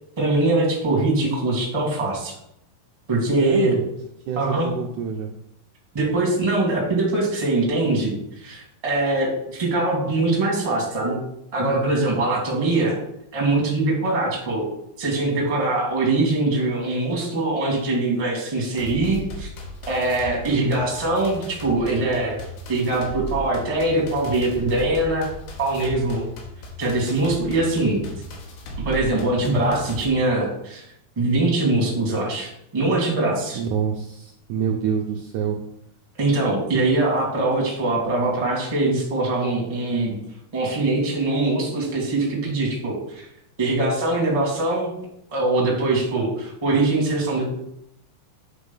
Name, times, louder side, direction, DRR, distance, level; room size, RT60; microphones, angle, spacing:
voice 1, 0.2-2.3 3.1-3.7 4.4-4.7 5.9-11.2 11.5-13.0 13.3-14.6 15.0-19.5 19.9-22.4 22.7-25.3 25.6-26.2 26.8-28.0 28.8-30.8 31.1-33.6 36.2-40.2 40.5-43.3 43.6-44.9 45.3-47.4, right 2 dB, 15° right, -2 dB, 1.1 m, -22 dB
voice 2, 3.4-3.8 4.3-5.3 33.6-35.6, right 7 dB, 90° right, 1 dB, 1.7 m, -26 dB
sound 1, 18.8-30.1, equal, 75° left, 3.1 m, -36 dB
8.0 x 4.0 x 5.5 m, 0.77 s
omnidirectional pair, 4.4 m